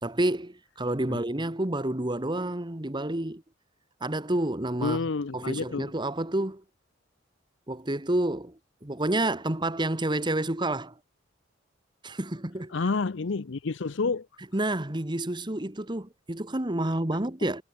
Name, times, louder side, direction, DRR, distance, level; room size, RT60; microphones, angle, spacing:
voice 1, 0.0-3.4 4.0-5.0 5.3-6.6 7.7-10.9 12.0-12.7 14.5-17.6, right 1 dB, 25° right, 1.5 m, -29 dB
voice 2, 4.8-5.9 12.7-14.3, left 4 dB, 65° left, 0.6 m, -29 dB
head